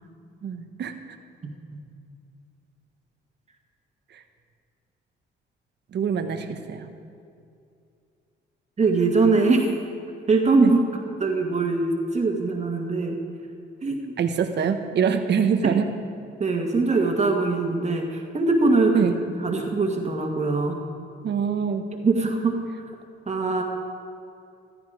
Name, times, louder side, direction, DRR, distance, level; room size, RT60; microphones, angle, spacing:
voice 1, 0.4-0.9 4.1-4.2 5.9-6.9 10.6-10.7 14.2-15.9 18.9-19.1 21.2-21.9, right 7 dB, 60° right, 7 dB, 1.2 m, -24 dB
voice 2, 1.4-1.8 8.8-9.7 10.3-10.8 11.2-13.2 13.8-14.1 15.6-15.7 16.4-19.1 19.4-20.8 22.0-22.6 23.3-23.6, right 3 dB, 35° right, 1 dB, 1.9 m, -22 dB
14.5 x 14.0 x 5.0 m, 2.4 s
cardioid pair, 90°, 20 cm